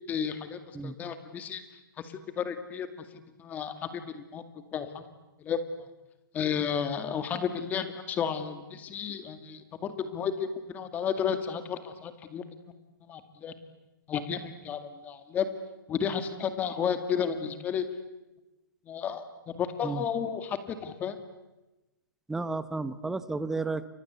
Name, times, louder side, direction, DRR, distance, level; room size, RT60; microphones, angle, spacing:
voice 1, 0.1-1.6 2.0-2.9 3.4-4.4 4.7-5.0 5.4-5.9 6.3-12.4 13.1-13.5 14.1-15.5 15.9-17.9 18.9-19.2 19.6-21.2, left 7 dB, 15° left, 10 dB, 2.1 m, -32 dB
voice 2, 22.3-23.9, right 3 dB, 5° right, 14 dB, 0.9 m, -32 dB
30.0 x 24.0 x 8.2 m, 1.0 s
hypercardioid pair, 160°, 11 cm